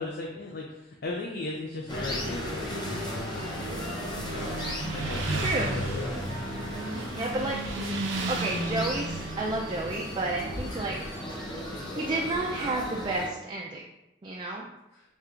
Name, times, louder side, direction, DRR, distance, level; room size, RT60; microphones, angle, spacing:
voice 1, 0.0-4.6 4.9-6.1, left 2 dB, 55° left, -1 dB, 0.5 m, -37 dB
sound 1, 1.9-13.3, equal, 25° left, 0.7 m, -36 dB
Motorcycle, 2.3-12.1, right 2 dB, 80° right, 0.6 m, -36 dB
voice 2, 5.3-5.8 7.1-7.6 8.3-11.0 12.0-13.9 14.2-14.7, right 2 dB, 25° right, -2 dB, 0.3 m, -31 dB
4.3 x 2.4 x 3.7 m, 0.93 s
head